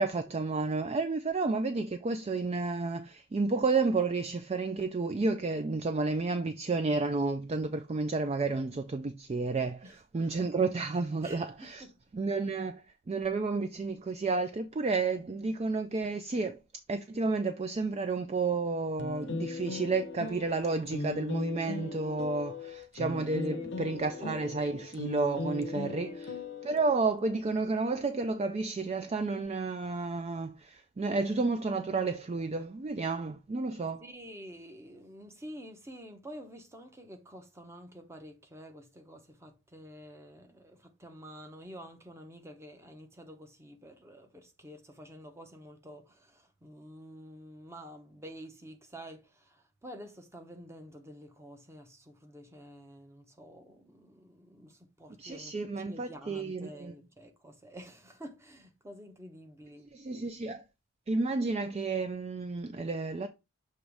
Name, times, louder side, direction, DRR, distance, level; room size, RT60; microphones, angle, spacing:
voice 1, 0.0-11.9 12.1-16.6 16.9-26.3 26.6-34.0 55.2-56.9 59.9-60.6 61.1-63.3, right 3 dB, 30° right, 0.3 m, -31 dB
voice 2, 11.2-12.0 23.5-23.8 24.2-24.5 25.9-26.2 34.0-60.3, equal, 15° right, 0.9 m, -49 dB
sound 1, 19.0-27.1, left 3 dB, 55° left, 0.6 m, -38 dB
6.6 x 3.1 x 4.7 m
head